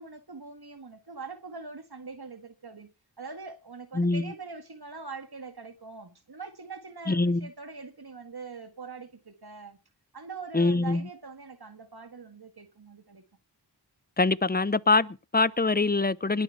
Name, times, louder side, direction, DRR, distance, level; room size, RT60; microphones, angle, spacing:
voice 1, 0.0-2.9 3.2-9.8 10.1-13.2, right 4 dB, 60° right, 1.8 m, -43 dB
voice 2, 3.9-4.3 7.1-7.4 10.5-11.0 14.2-16.4, left 3 dB, 20° left, 0.7 m, -24 dB
21.0 x 7.2 x 5.8 m
wide cardioid pair, 55°, 44 cm